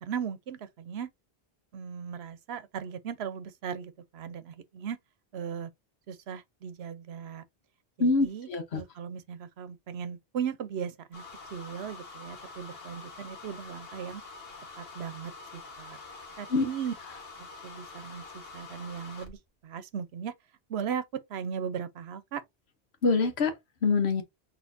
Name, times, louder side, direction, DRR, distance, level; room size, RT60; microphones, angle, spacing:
voice 1, 0.0-1.1 1.7-5.0 5.3-5.7 6.1-7.4 8.0-8.5 8.7-11.2 11.5-14.2 14.8-16.0 16.4-16.9 17.6-20.3 20.7-21.0 21.3-22.4, right 7 dB, 85° right, 0.9 m, -37 dB
voice 2, 8.0-8.8 16.5-16.6 23.0-23.5 23.8-24.2, left 4 dB, 80° left, 1.3 m, -25 dB
sound 1, 11.1-19.4, left 4 dB, 65° left, 1.5 m, -46 dB
6.3 x 3.1 x 2.6 m
omnidirectional pair, 1.1 m